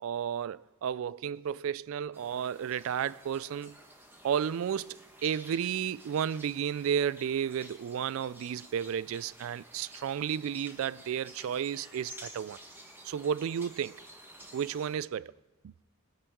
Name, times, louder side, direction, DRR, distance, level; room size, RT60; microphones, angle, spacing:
voice 1, 0.0-3.8 4.2-12.6 13.0-14.0 14.5-15.3 15.6-15.7, right 8 dB, 65° right, 0.3 m, -32 dB
sound 1, 2.1-15.0, right 1 dB, 10° right, 1.2 m, -52 dB
21.0 x 9.7 x 3.6 m
head